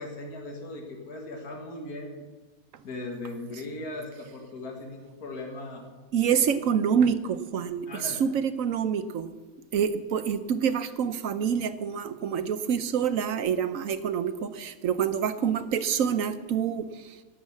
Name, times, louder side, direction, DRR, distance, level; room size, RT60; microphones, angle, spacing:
voice 1, 0.0-2.2 2.8-5.8 6.2-6.5 7.9-8.2, left 2 dB, 75° left, 1 dB, 2.3 m, -38 dB
voice 2, 6.1-9.3 9.7-17.2, right 7 dB, 65° right, 11 dB, 1.2 m, -27 dB
17.0 x 7.4 x 7.2 m, 1.3 s
omnidirectional pair, 1.6 m